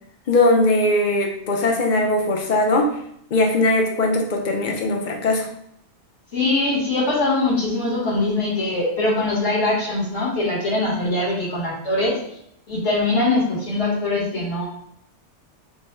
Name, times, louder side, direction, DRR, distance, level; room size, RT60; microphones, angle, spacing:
voice 1, 0.3-2.9 3.3-5.5, left 2 dB, 50° left, 2 dB, 0.7 m, -20 dB
voice 2, 6.3-12.2 12.7-14.7, left 2 dB, 75° left, -4 dB, 1.7 m, -22 dB
5.3 x 2.1 x 3.2 m, 0.71 s
omnidirectional pair, 1.2 m